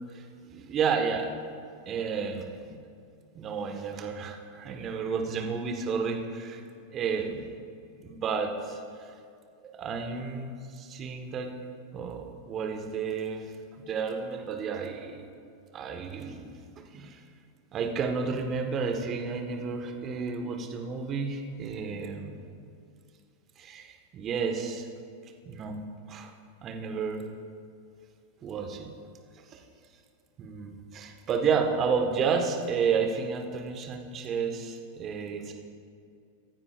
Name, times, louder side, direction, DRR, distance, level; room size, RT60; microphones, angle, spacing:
voice 1, 0.1-1.2 1.8-2.8 3.3-6.6 6.9-7.5 8.0-8.8 9.8-11.5 11.9-15.2 15.7-16.6 16.9-17.2 17.7-22.3 23.6-24.9 25.4-25.8 26.1-26.3 26.6-27.2 28.4-28.9 29.3-29.6 30.4-35.5, right 5 dB, 35° right, 4 dB, 1.5 m, -31 dB
24.0 x 9.6 x 2.5 m, 2.4 s
figure-of-eight pair, 90°, 0 cm